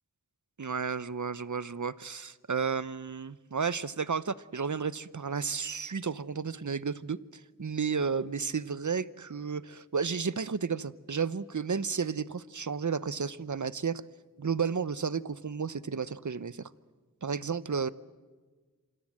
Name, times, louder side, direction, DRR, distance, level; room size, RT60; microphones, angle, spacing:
voice 1, 0.6-14.0 14.4-16.7 17.2-17.9, right 5 dB, 55° right, 18 dB, 0.9 m, -32 dB
27.5 x 25.5 x 7.7 m, 1.4 s
wide cardioid pair, 45°, 35 cm